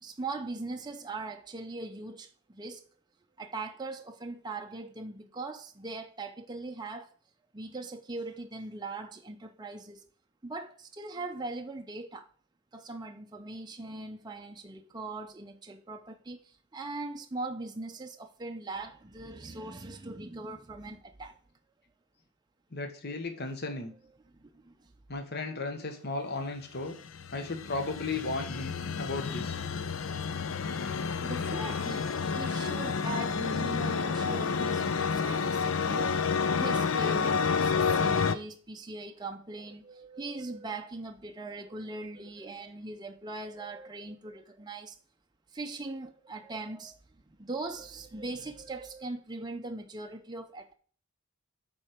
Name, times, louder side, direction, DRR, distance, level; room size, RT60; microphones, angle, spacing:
voice 1, 0.0-2.9 3.4-7.1 7.5-10.1 10.4-12.3 12.7-21.4 24.1-24.7 29.6-29.7 30.1-30.4 31.2-45.0 45.5-47.0 47.3-50.7, right 2 dB, 20° right, 0.5 m, -40 dB
voice 2, 22.7-23.9 25.1-26.9 27.3-28.7 29.0-29.6, left 3 dB, 50° left, 1.1 m, -35 dB
sound 1, 26.8-38.4, left 5 dB, 65° left, 0.5 m, -30 dB
7.3 x 4.5 x 4.9 m
head